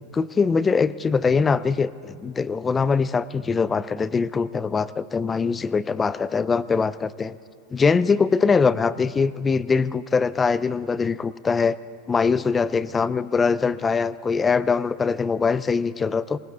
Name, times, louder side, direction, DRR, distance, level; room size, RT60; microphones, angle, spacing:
voice 1, 0.1-7.4 7.7-11.8 12.1-16.4, left 5 dB, 15° left, 18 dB, 0.3 m, -22 dB
20.5 x 18.5 x 3.5 m, 2.4 s
supercardioid pair, 170°, 0 cm